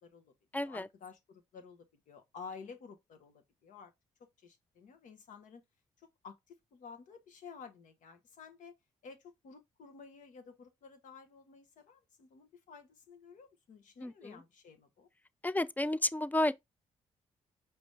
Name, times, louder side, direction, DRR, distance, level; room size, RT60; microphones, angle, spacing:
voice 1, 0.0-3.9 4.2-5.6 6.0-8.8 9.0-15.1, left 5 dB, 75° left, 1.1 m, -52 dB
voice 2, 0.5-0.9 14.0-14.3 15.4-16.5, left 1 dB, 10° left, 0.4 m, -31 dB
5.1 x 3.0 x 3.2 m
supercardioid pair, 55°, 13 cm